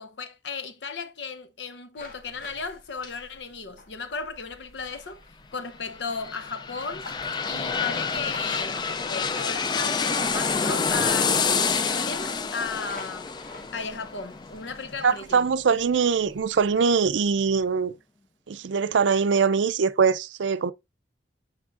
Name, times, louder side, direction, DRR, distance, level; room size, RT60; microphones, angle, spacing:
voice 1, 0.0-5.2 5.5-7.0 7.5-13.3 13.7-15.5, left 4 dB, 80° left, 0.8 m, -35 dB
sound 1, 2.0-17.6, left 2 dB, 50° left, 1.8 m, -48 dB
sound 2, 5.9-15.5 15.9-16.0, left 5 dB, 25° left, 0.3 m, -28 dB
voice 2, 15.0-17.9 18.5-20.7, right 5 dB, 90° right, 0.5 m, -22 dB
8.6 x 4.4 x 2.5 m
head